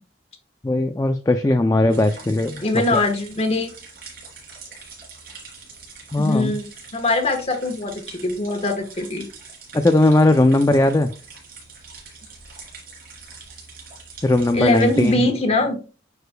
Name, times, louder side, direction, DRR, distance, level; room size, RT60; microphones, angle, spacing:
voice 1, 0.6-2.6 2.9-3.0 6.1-6.5 9.7-11.1 14.2-15.3, left 2 dB, 20° left, 7 dB, 0.3 m, -18 dB
sound 1, 1.9-15.1, right 4 dB, 50° right, 3.1 m, -43 dB
voice 2, 2.6-3.7 6.2-6.7 6.9-9.3 14.5-15.8, left 2 dB, 35° left, 5 dB, 1.2 m, -22 dB
9.0 x 5.0 x 2.2 m, 0.34 s
head